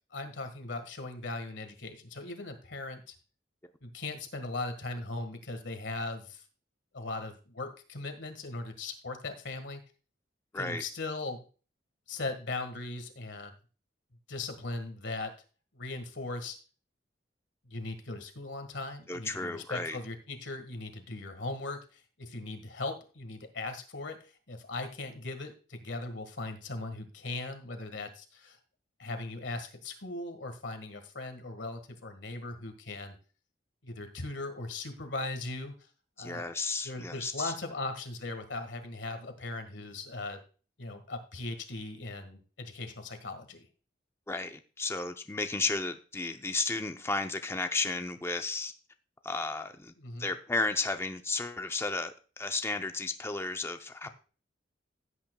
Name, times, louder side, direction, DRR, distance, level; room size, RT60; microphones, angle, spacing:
voice 1, 0.1-3.0 3.8-6.4 6.9-9.8 10.5-11.4 12.1-13.5 14.3-15.3 15.7-16.6 17.6-28.6 29.0-33.2 33.8-35.7 36.2-36.5 36.8-40.4 40.8-43.7 50.0-50.3 54.0-54.1, left 2 dB, 85° left, 8 dB, 1.6 m, -39 dB
voice 2, 19.1-20.0 36.2-37.5 44.3-48.7 49.2-49.9 50.2-54.1, left 3 dB, 15° left, 7 dB, 0.5 m, -33 dB
16.0 x 8.7 x 2.3 m, 0.37 s
head